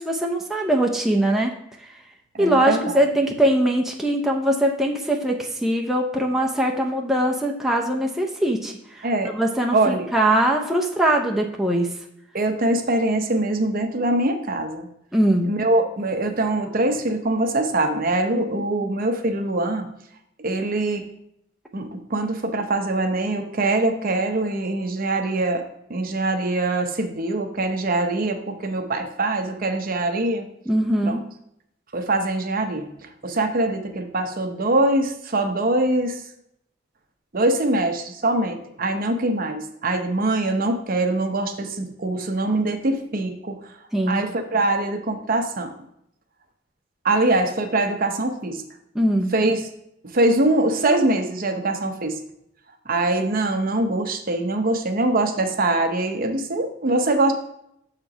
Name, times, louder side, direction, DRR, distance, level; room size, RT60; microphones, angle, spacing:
voice 1, 0.0-1.5 1.8-1.9 2.4-9.1 9.3-11.9 15.1-15.5 18.4-18.6 30.7-31.2 43.9-44.2 48.9-49.3, right 1 dB, ahead, 0 dB, 0.6 m, -21 dB
voice 2, 2.3-3.0 9.0-9.3 9.7-10.1 12.3-14.9 15.5-19.9 20.4-21.0 21.7-25.6 25.9-30.4 31.0-31.2 31.9-32.9 33.2-36.2 37.3-43.7 44.1-45.7 47.0-48.6 49.3-49.7 50.1-52.2 52.9-57.3, right 2 dB, 50° right, 5 dB, 0.7 m, -23 dB
6.7 x 4.4 x 4.9 m, 0.76 s
head